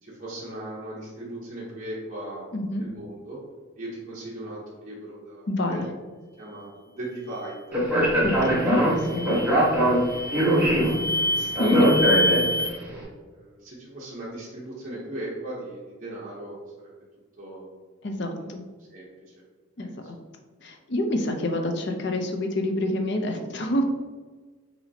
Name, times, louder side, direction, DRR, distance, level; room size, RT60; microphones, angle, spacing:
voice 1, 0.0-2.5 2.8-3.4 3.8-5.8 6.4-7.8 10.1-11.2 11.6-11.9 12.5-16.9 17.4-17.7 18.3-18.5 18.9-19.3 19.8-20.0, right 1 dB, 35° right, -6 dB, 0.8 m, -38 dB
voice 2, 2.5-2.8 5.5-5.8 8.2-9.4 11.4-11.9 18.0-18.6 19.8-20.2 20.6-23.8, left 1 dB, 55° left, 4 dB, 0.5 m, -27 dB
Speech, 7.7-12.8, equal, 10° right, 1.1 m, -22 dB
sound 1, 8.3-8.6 9.0-9.5 10.0-12.7, left 1 dB, 15° left, 0.8 m, -27 dB
5.8 x 3.1 x 2.7 m, 1.4 s
head